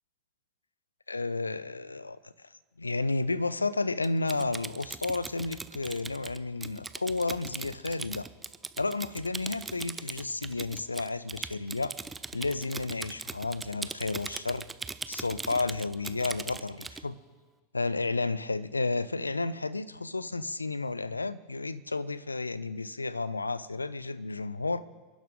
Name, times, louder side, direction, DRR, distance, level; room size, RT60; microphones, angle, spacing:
voice 1, 1.1-2.2 2.8-8.3 8.8-11.9 12.3-14.7 15.1-17.2 17.7-24.8, left 3 dB, 80° left, 17 dB, 0.5 m, -32 dB
Typing, 4.0-17.0, right 4 dB, 10° right, 0.5 m, -40 dB
28.0 x 11.5 x 3.8 m, 1.4 s
figure-of-eight pair, 90°, 0 cm